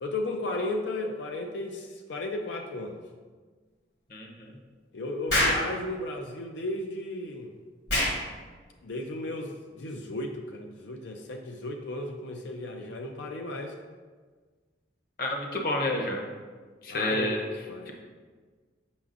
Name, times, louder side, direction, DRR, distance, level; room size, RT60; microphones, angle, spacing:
voice 1, 0.0-3.0 4.9-7.5 8.8-13.8 16.9-17.9, left 2 dB, 85° left, 3 dB, 0.5 m, -34 dB
voice 2, 4.1-4.6 15.2-16.3 16.8-17.4 17.9-18.0, left 1 dB, 50° left, 1 dB, 0.8 m, -29 dB
Explosion, 5.3-5.7 7.9-8.2, left 1 dB, 70° left, 1.5 m, -24 dB
7.0 x 5.8 x 2.5 m, 1.5 s
head